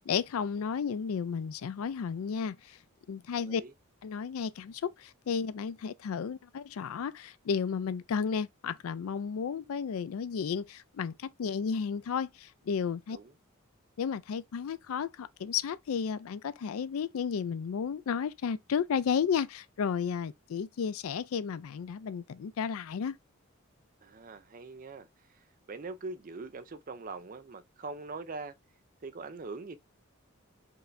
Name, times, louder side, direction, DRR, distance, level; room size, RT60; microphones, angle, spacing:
voice 1, 0.0-2.8 3.1-3.6 4.0-13.2 14.0-23.2, left 6 dB, 80° left, 0.4 m, -33 dB
voice 2, 3.4-3.7 13.1-13.3 24.0-28.5 29.0-29.8, right 3 dB, 40° right, 0.5 m, -43 dB
4.6 x 2.6 x 3.2 m
head